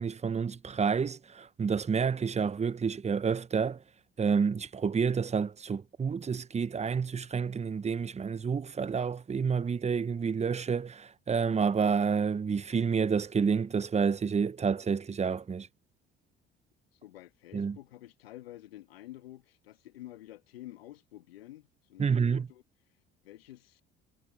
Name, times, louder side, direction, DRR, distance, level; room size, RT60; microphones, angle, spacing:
voice 1, 0.0-3.8 4.2-15.7 17.5-17.8 22.0-22.5, right 6 dB, 20° right, 0.8 m, -29 dB
voice 2, 16.9-22.6 23.2-23.8, left 15 dB, 85° left, 1.5 m, -49 dB
hypercardioid pair, 60°, 29 cm